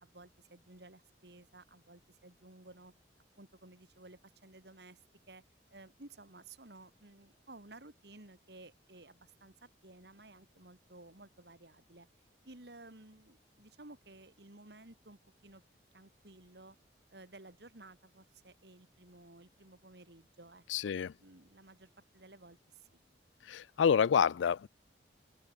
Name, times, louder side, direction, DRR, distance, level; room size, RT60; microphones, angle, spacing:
voice 1, 0.0-2.9 3.4-5.0 5.3-5.4 5.7-12.1 12.4-15.6 15.9-16.8 17.1-20.9 21.2-22.9, right 2 dB, 65° right, 2.7 m, -55 dB
voice 2, 20.7-21.1 23.5-24.7, left 7 dB, 85° left, 0.4 m, -28 dB
open air
head